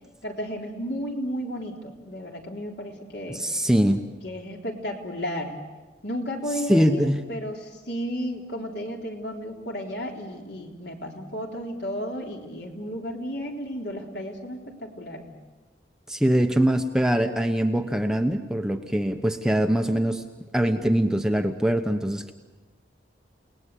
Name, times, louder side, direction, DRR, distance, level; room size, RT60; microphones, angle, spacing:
voice 1, 0.2-3.6 4.2-5.6 6.0-15.3, equal, 60° left, 1 dB, 3.7 m, -33 dB
voice 2, 3.3-4.0 6.7-7.2 16.1-20.2 20.5-22.3, equal, 5° right, 5 dB, 0.9 m, -23 dB
30.0 x 19.0 x 8.4 m, 1.2 s
head